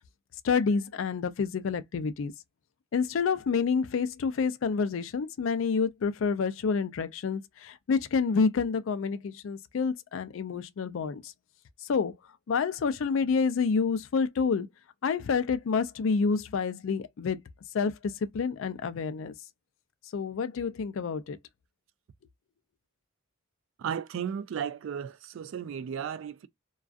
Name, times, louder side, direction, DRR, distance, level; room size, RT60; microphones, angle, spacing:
voice 1, 0.4-2.3 2.9-11.3 11.9-12.1 12.5-14.7 15.0-17.4 17.7-19.3 20.1-21.4, left 5 dB, 65° left, 0.4 m, -28 dB
voice 2, 23.8-26.5, right 8 dB, 65° right, 0.3 m, -34 dB
2.3 x 2.3 x 2.3 m
head